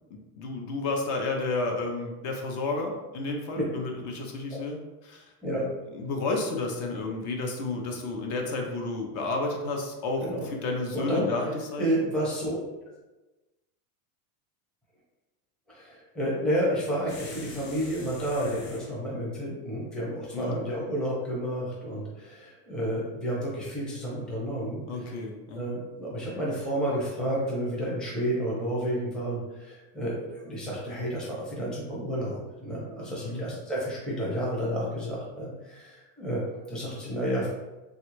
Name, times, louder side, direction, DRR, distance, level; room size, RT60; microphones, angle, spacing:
voice 1, 0.4-4.8 5.0-5.2 5.9-11.9 20.3-20.6 24.9-25.7 33.2-33.5, left 3 dB, 50° left, 2 dB, 0.7 m, -31 dB
voice 2, 10.9-11.3 11.8-12.6 15.7-25.1 25.6-37.5, equal, ahead, -6 dB, 0.5 m, -31 dB
sound 1, 17.1-18.9, left 2 dB, 85° left, 1.1 m, -45 dB
3.2 x 2.4 x 3.0 m, 1.1 s
supercardioid pair, 135°, 46 cm